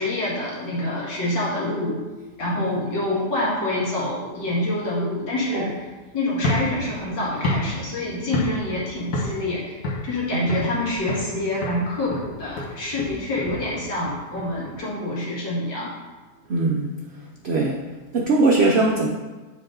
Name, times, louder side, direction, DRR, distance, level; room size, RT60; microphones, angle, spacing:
voice 1, 0.0-2.0 2.4-5.7 6.1-9.8 10.0-15.9, left 1 dB, 85° left, -6 dB, 2.6 m, -26 dB
sound 1, 6.3-8.8 9.1-9.5 9.8-10.8 11.1-11.4 11.6-14.7, left 1 dB, 60° left, 1.7 m, -29 dB
voice 2, 10.3-10.7 16.5-16.9 17.4-17.8 18.1-19.1, right 2 dB, 70° right, 0 dB, 0.6 m, -21 dB
7.4 x 5.3 x 3.8 m, 1.3 s
omnidirectional pair, 1.9 m